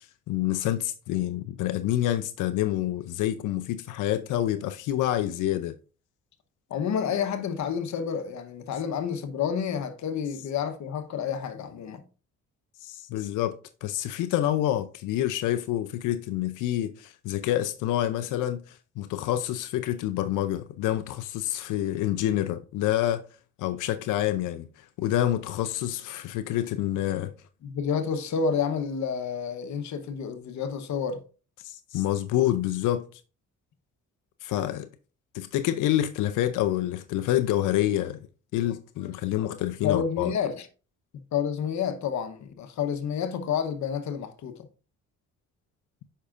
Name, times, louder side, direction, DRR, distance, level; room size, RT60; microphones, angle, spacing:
voice 1, 0.3-5.7 12.8-13.6 13.8-23.2 23.6-24.7 25.0-27.3 31.6-33.2 34.4-34.9 35.3-38.2 38.5-40.3, left 13 dB, 85° left, 0.6 m, -27 dB
voice 2, 6.7-12.0 27.6-31.2 39.8-40.7 41.1-44.7, left 7 dB, 70° left, 1.0 m, -29 dB
8.4 x 5.5 x 2.5 m
cardioid pair, 90°, 30 cm